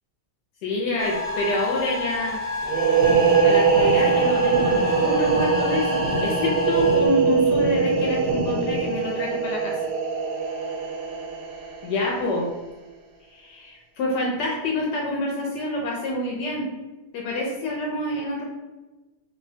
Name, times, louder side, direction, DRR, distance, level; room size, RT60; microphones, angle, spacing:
voice 1, 0.6-2.5 3.4-9.8 11.8-12.5 13.3-16.7 17.1-18.4, left 1 dB, 80° left, -2 dB, 1.2 m, -27 dB
sound 1, 1.0-7.1, left 3 dB, 55° left, 1.0 m, -30 dB
sound 2, 2.6-12.2, right 5 dB, 75° right, 1.2 m, -22 dB
sound 3, 3.0-9.0, equal, 60° right, 0.7 m, -31 dB
3.7 x 2.1 x 2.7 m, 1.1 s
omnidirectional pair, 1.8 m